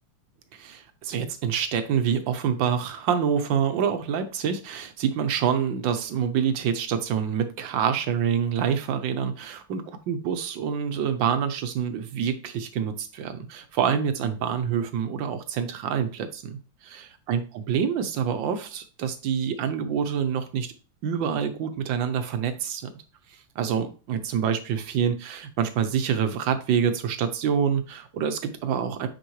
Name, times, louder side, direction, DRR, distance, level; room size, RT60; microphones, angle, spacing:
voice 1, 0.5-16.6 17.3-20.7 21.0-22.9 23.5-29.1, right 7 dB, 80° right, 9 dB, 1.6 m, -26 dB
9.2 x 4.5 x 3.1 m, 0.34 s
omnidirectional pair, 2.1 m